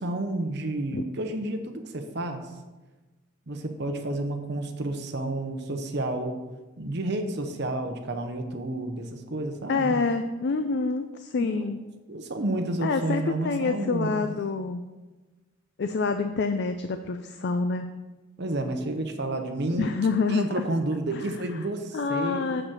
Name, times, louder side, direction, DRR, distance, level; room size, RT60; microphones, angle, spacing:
voice 1, 0.0-2.4 3.5-6.4 6.8-10.0 11.3-11.5 12.1-14.2 18.4-19.9 20.3-22.5, right 2 dB, 50° right, 6 dB, 0.9 m, -30 dB
voice 2, 9.7-11.8 12.8-14.8 15.8-17.9 19.8-20.5 21.9-22.6, left 4 dB, 55° left, 8 dB, 0.4 m, -27 dB
7.4 x 4.8 x 6.4 m, 1.2 s
head